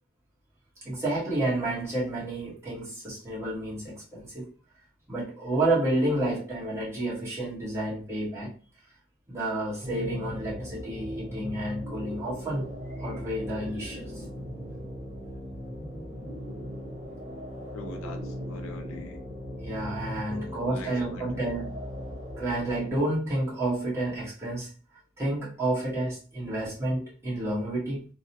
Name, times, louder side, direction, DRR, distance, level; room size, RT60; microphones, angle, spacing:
voice 1, 0.8-4.5 5.1-8.5 9.3-12.7 13.0-14.2 19.6-21.7 22.4-24.7 25.2-28.1, right 1 dB, 15° right, 1.2 m, -30 dB
sound 1, 9.8-23.0, equal, 35° right, 0.8 m, -38 dB
voice 2, 17.7-19.2 20.3-21.3, left 2 dB, 80° left, 0.5 m, -43 dB
2.9 x 2.0 x 2.7 m
head